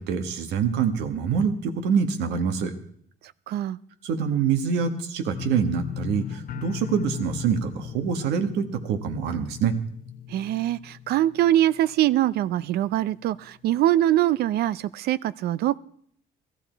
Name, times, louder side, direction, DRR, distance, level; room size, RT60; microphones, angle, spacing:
voice 1, 0.0-2.7 4.0-9.7, right 6 dB, 90° right, 7 dB, 1.5 m, -25 dB
voice 2, 3.5-3.8 10.3-15.8, right 13 dB, 70° right, 18 dB, 0.5 m, -23 dB
sound 1, 5.3-12.2 12.5-13.1 13.4-13.5, left 10 dB, 55° left, 0.8 m, -37 dB
17.5 x 13.0 x 4.5 m, 0.64 s
cardioid pair, 110°, 17 cm